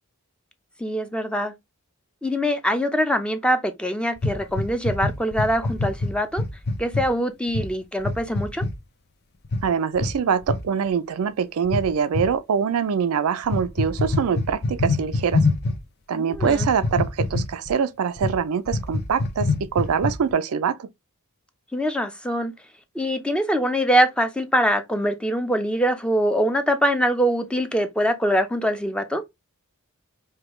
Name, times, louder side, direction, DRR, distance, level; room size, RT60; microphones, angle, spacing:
voice 1, 0.8-1.5 2.2-6.4 6.8-8.6 16.1-16.7 21.7-22.5 22.9-29.2, equal, 5° left, 0.6 m, -23 dB
sound 1, 4.2-7.1 7.5-7.7 8.0-8.7 9.4-9.7 9.9-10.1 10.4-10.6 11.6-12.3 13.4-15.8 16.3-17.7 18.2-18.4 18.7-20.3, left 3 dB, 50° left, 0.7 m, -25 dB
voice 2, 9.6-15.5 16.1-20.9, right 6 dB, 75° right, 0.4 m, -24 dB
5.0 x 2.3 x 3.0 m
head